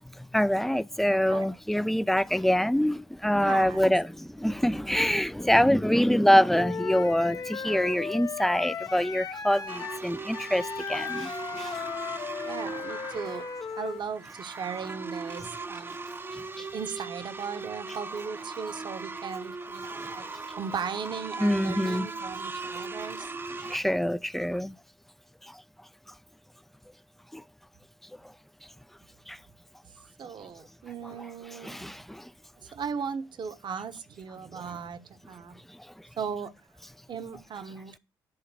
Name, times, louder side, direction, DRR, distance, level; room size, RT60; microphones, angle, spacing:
voice 1, 0.3-11.8 16.6-16.7 20.0-20.1 21.4-22.1 23.6-24.7 27.3-27.4 29.3-29.4 31.6-32.3, equal, ahead, 0.6 m, -25 dB
voice 2, 3.3-3.9 12.4-13.5 13.8-16.0 16.7-20.3 20.5-23.6 30.2-31.7 32.6-35.5 36.2-36.5 37.1-38.0, right 6 dB, 45° right, 1.3 m, -37 dB
Wind instrument woodwind instrument, 6.5-14.0, left 6 dB, 35° left, 0.9 m, -36 dB
sound 1, 9.7-23.8, right 3 dB, 20° right, 0.9 m, -39 dB
11.0 x 3.8 x 6.9 m
figure-of-eight pair, 40°, 10 cm